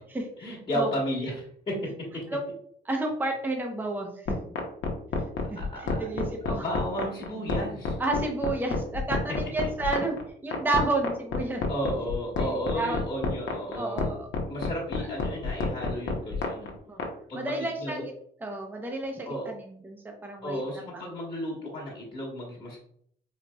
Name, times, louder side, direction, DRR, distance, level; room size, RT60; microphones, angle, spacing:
voice 1, 0.4-2.2 5.5-8.0 9.1-9.4 11.7-14.0 14.5-16.7 17.3-18.0 19.2-19.5 20.4-22.8, equal, 30° left, -5 dB, 1.3 m, -33 dB
voice 2, 2.8-4.4 5.5-6.6 8.0-10.2 10.4-11.6 12.4-13.0 13.7-14.3 15.0-15.1 16.9-17.1 17.3-18.1 18.4-20.6, right 2 dB, 10° right, 2 dB, 0.7 m, -31 dB
sound 1, 4.3-17.1, left 4 dB, 70° left, 0.9 m, -29 dB
4.0 x 2.8 x 2.2 m, 0.63 s
cardioid pair, 90°, 20 cm